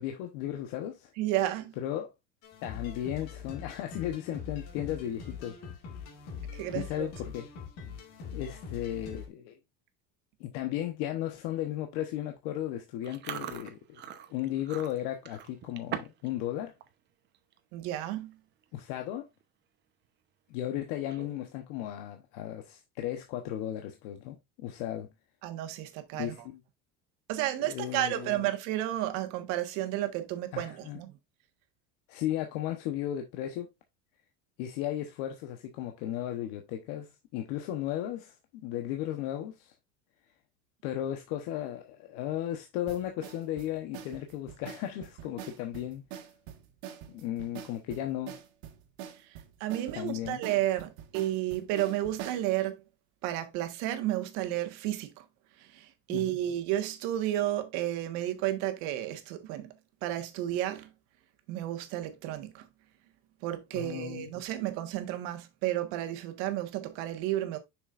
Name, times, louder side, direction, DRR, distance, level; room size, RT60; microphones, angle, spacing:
voice 1, 0.0-1.1 1.8-2.1 2.6-5.6 6.7-7.5 8.3-9.6 10.4-16.7 18.7-19.3 20.5-25.1 26.1-26.6 27.6-28.4 30.5-31.0 32.1-33.7 34.6-39.7 40.8-46.0 47.1-48.4 49.9-50.4 56.1-56.3 63.7-64.3, left 12 dB, 65° left, 1.0 m, -35 dB
voice 2, 1.2-1.7 6.5-7.1 17.7-18.4 25.4-26.5 27.3-31.1 49.3-52.8 53.2-55.2 55.6-59.7 60.0-60.9 61.5-62.7 63.4-67.6, right 13 dB, 65° right, 1.5 m, -32 dB
sound 1, 2.4-9.3, left 6 dB, 50° left, 2.1 m, -43 dB
Chewing mastication, 13.0-16.3 16.6-16.9 17.3-17.6 18.3-18.4 18.6-19.0 19.4-19.5 20.9-21.5, right 10 dB, 35° right, 0.8 m, -41 dB
sound 2, 42.9-52.5, right 10 dB, 80° right, 1.8 m, -45 dB
6.6 x 6.2 x 2.5 m
cardioid pair, 155°, 32 cm